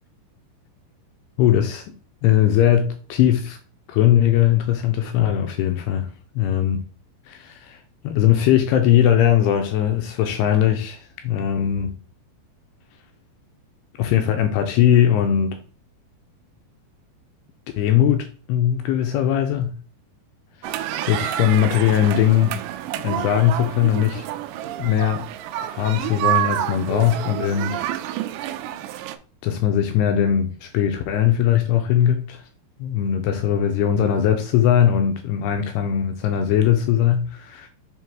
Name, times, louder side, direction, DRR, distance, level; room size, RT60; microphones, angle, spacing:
voice 1, 1.4-1.9 2.2-3.6 3.9-6.1 6.4-6.8 7.3-7.8 8.0-11.9 14.0-15.6 17.8-19.7 21.0-22.6 23.0-24.3 24.8-25.2 25.6-27.8 29.4-32.4 32.8-37.7, left 10 dB, 85° left, 2.4 m, -20 dB
sound 1, 20.6-29.2, right 13 dB, 80° right, 2.6 m, -28 dB
7.2 x 2.9 x 4.6 m
omnidirectional pair, 5.2 m